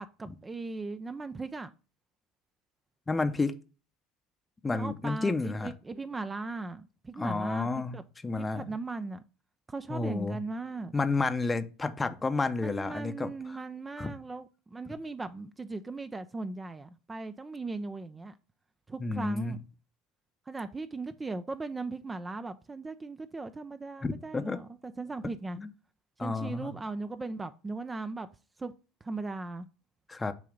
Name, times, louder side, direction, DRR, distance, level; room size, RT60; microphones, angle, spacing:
voice 1, 0.0-1.7 4.7-7.7 7.9-8.0 8.4-9.2 9.7-10.9 12.6-18.3 18.9-19.6 20.5-25.6 26.2-28.3 28.6-28.7 29.0-29.7, right 3 dB, 20° right, 0.4 m, -38 dB
voice 2, 3.1-3.5 4.6-5.7 7.2-8.0 8.2-8.6 9.9-10.4 10.9-13.6 14.0-14.1 19.0-19.6 24.0-24.6 25.6-25.7 26.2-26.7 30.1-30.3, left 3 dB, 20° left, 0.6 m, -31 dB
7.0 x 2.8 x 5.1 m
hypercardioid pair, 75°, 0 cm